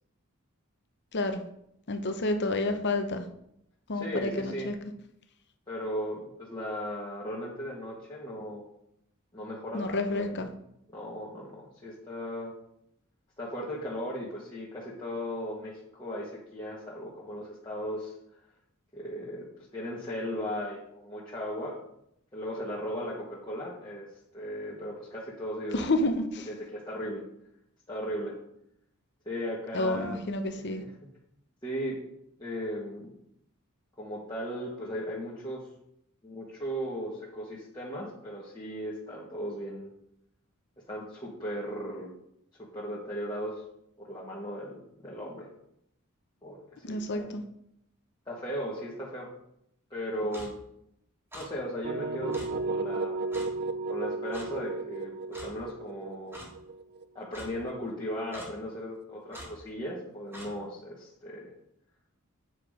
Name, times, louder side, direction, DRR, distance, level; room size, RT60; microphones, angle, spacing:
voice 1, 1.9-3.3 3.9-4.7 9.7-10.5 25.7-26.5 29.7-30.8 46.8-47.4, left 2 dB, 55° left, 7 dB, 0.9 m, -29 dB
voice 2, 3.9-4.7 5.7-8.6 9.3-10.4 10.9-12.5 13.4-18.1 18.9-19.5 19.7-21.8 22.3-24.1 24.3-25.9 26.5-27.2 27.9-28.3 29.2-30.2 30.8-31.1 31.6-32.0 32.4-33.1 34.0-35.6 36.2-39.9 40.9-42.1 42.6-43.6 44.0-45.5 46.4-47.3 48.3-49.3 49.9-50.6 51.3-53.2 53.9-56.4 57.1-61.5, equal, 20° left, -7 dB, 1.5 m, -37 dB
Clock, 50.3-50.5 51.3-51.5 52.3-52.5 53.3-53.5 54.3-54.5 55.3-55.5 56.3-56.5 57.3-57.5 58.3-58.5 59.3-59.5 60.3-60.5, equal, 10° right, 1.7 m, -43 dB
sound 1, 51.8-57.7, right 3 dB, 50° right, 0.5 m, -34 dB
8.2 x 4.9 x 5.0 m, 0.76 s
head